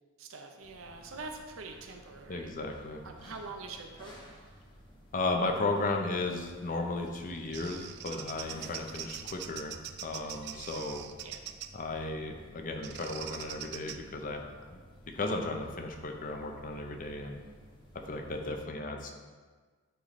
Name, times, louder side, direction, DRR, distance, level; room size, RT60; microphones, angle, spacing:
voice 1, 0.2-2.5 3.0-4.4 11.2-11.5, right 3 dB, 70° right, 4 dB, 0.7 m, -45 dB
sound 1, 0.6-18.6, equal, 25° left, 1.0 m, -55 dB
voice 2, 2.3-3.0 5.1-11.1 11.7-14.8 15.1-17.4 18.1-19.1, left 2 dB, 40° left, 3 dB, 0.7 m, -35 dB
Bird vocalization bird call bird song, 7.1-11.8 12.8-14.0, right 11 dB, 55° right, 0.3 m, -43 dB
9.1 x 3.2 x 4.1 m, 1.4 s
head